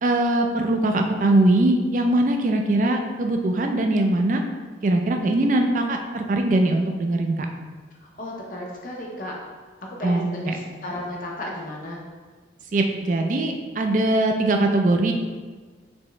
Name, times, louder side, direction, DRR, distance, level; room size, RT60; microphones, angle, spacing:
voice 1, 0.0-4.4 4.8-7.5 10.0-10.6 12.7-15.1, right 1 dB, 45° right, 4 dB, 0.4 m, -21 dB
voice 2, 8.2-9.4 9.8-12.0, left 1 dB, 45° left, -2 dB, 0.6 m, -34 dB
4.4 x 3.0 x 3.2 m, 1.4 s
head